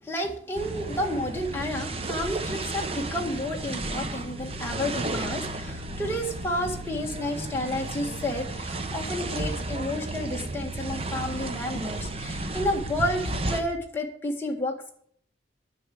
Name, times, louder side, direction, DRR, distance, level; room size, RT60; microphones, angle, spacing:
voice 1, 0.0-13.2 13.5-14.9, left 1 dB, 10° left, 0 dB, 1.8 m, -31 dB
sound 1, 0.5-13.6, right 2 dB, 30° right, 0.9 m, -33 dB
10.0 x 6.5 x 8.4 m, 0.62 s
head